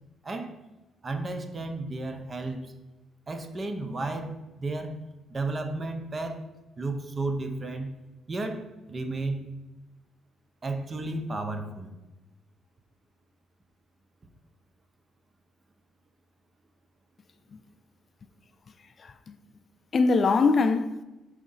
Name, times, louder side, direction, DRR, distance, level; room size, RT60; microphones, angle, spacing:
voice 1, 0.2-0.6 1.0-2.7 3.3-5.0 5.3-6.4 6.8-7.9 8.3-9.5 10.6-11.9, right 2 dB, 35° right, 0.7 m, -33 dB
voice 2, 19.0-19.3 19.9-21.0, left 4 dB, 45° left, 0.3 m, -23 dB
4.9 x 3.7 x 5.5 m
cardioid pair, 90°, 0 cm